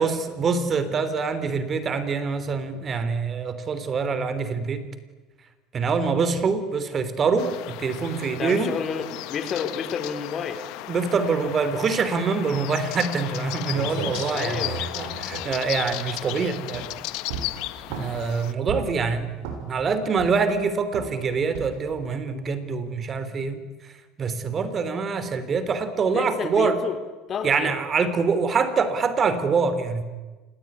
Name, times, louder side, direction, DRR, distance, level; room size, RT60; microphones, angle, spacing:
voice 1, 0.0-4.9 5.7-8.7 10.9-14.6 15.0-16.8 17.9-19.3 19.6-23.6 24.2-26.8 27.4-30.0, right 5 dB, 35° right, 12 dB, 3.3 m, -25 dB
sound 1, 7.4-18.5, left 17 dB, 70° left, 1.3 m, -35 dB
voice 2, 8.4-10.6 14.3-14.9 26.1-27.0 27.3-27.8, left 6 dB, 40° left, 10 dB, 3.5 m, -30 dB
sound 2, 13.4-13.5 13.7-16.3 16.7-17.0 17.3-18.2 18.7-19.0 19.4-19.8 20.2-20.6 20.9-21.2 21.5-21.9, right 6 dB, 80° right, 7.3 m, -34 dB
27.0 x 21.0 x 9.8 m, 1.2 s
supercardioid pair, 95°, 0 cm